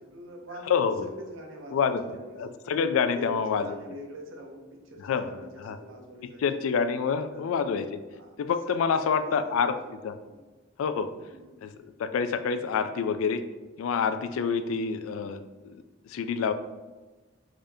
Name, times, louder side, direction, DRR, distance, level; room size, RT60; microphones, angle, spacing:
voice 1, 0.0-2.4 3.2-6.4 7.1-7.4 8.1-8.4 8.7-9.7 10.3-10.5 11.2-11.6, equal, 75° right, 1 dB, 0.7 m, -45 dB
voice 2, 0.7-1.1 1.7-2.0 2.4-3.7 5.0-5.8 6.4-8.0 8.4-9.8 10.0-10.1 10.8-11.1 11.6-13.4 13.8-16.5, left 6 dB, 90° left, 10 dB, 0.3 m, -27 dB
3.7 x 3.3 x 2.7 m, 1.2 s
head